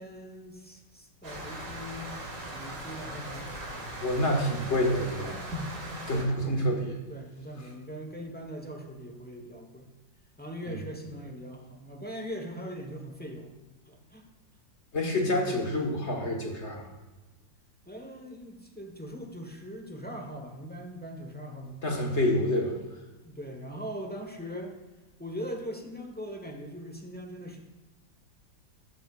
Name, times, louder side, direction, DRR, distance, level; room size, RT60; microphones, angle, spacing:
voice 1, 0.0-4.0 6.1-6.8 7.1-9.9 10.4-13.5 13.8-14.3 17.9-22.1 23.2-24.8 25.2-27.6, equal, 5° left, 2 dB, 0.8 m, -41 dB
sound 1, 1.2-6.2, right 1 dB, 40° right, 2.3 m, -39 dB
voice 2, 4.0-5.3 6.1-7.0 14.9-16.9 21.8-22.8, left 1 dB, 40° left, 1 dB, 1.6 m, -27 dB
13.5 x 12.0 x 2.4 m, 1.1 s
omnidirectional pair, 2.1 m